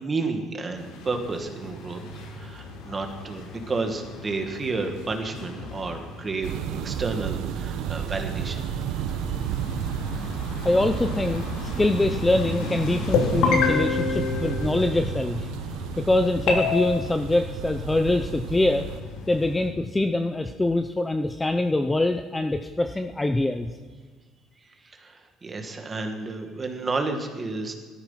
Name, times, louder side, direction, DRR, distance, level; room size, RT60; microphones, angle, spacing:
voice 1, 0.0-2.0 2.3-8.8 24.8-27.7, right 3 dB, 20° right, 4 dB, 2.0 m, -31 dB
sound 1, 0.8-19.7, left 1 dB, 85° left, 4.7 m, -37 dB
sound 2, 6.4-19.0, right 10 dB, 70° right, 0.9 m, -33 dB
voice 2, 10.6-15.5 16.0-18.9 19.3-23.7, left 2 dB, 10° left, 7 dB, 0.6 m, -24 dB
sound 3, 13.1-15.3 16.5-16.8, left 4 dB, 70° left, 3.9 m, -24 dB
17.5 x 13.5 x 5.8 m, 1.4 s
cardioid pair, 150°, 0 cm